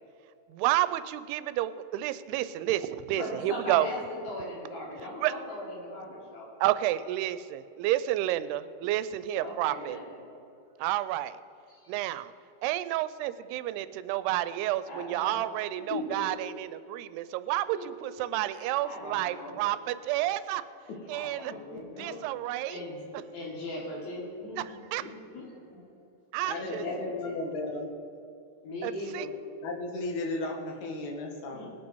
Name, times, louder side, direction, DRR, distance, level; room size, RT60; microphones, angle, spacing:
voice 1, 0.5-3.9 5.2-5.3 6.6-10.0 10.8-11.4 11.9-12.3 12.6-20.6 21.1-21.5 22.0-22.8 24.9-25.0 26.3-26.8 28.8-29.3, right 14 dB, 90° right, 14 dB, 2.6 m, -30 dB
voice 2, 3.2-6.5 9.4-10.2 11.7-12.1 14.8-15.4 15.8-16.2 17.7-17.9 18.5-19.6 20.9-22.2 22.7-23.1 23.3-25.8 26.5-27.4 28.6-29.3 31.5-31.7, left 1 dB, 85° left, -4 dB, 5.4 m, -39 dB
voice 3, 21.7-22.2 25.0-25.1 26.4-27.9 29.6-31.7, left 2 dB, 60° left, 1 dB, 2.5 m, -35 dB
20.5 x 8.6 x 4.6 m, 2.7 s
omnidirectional pair, 4.6 m